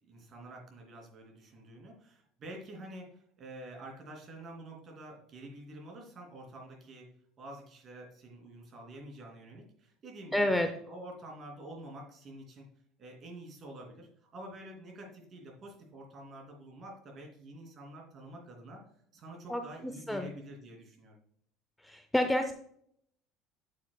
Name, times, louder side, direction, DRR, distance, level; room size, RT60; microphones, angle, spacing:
voice 1, 0.0-7.0 7.4-12.7 13.0-18.8 19.1-21.2, right 1 dB, 35° right, 1 dB, 2.8 m, -48 dB
voice 2, 10.3-10.7 19.5-19.6 20.1-20.3 21.8-22.5, left 1 dB, 5° left, 6 dB, 0.5 m, -28 dB
8.4 x 8.2 x 2.3 m, 0.67 s
cardioid pair, 150°, 0 cm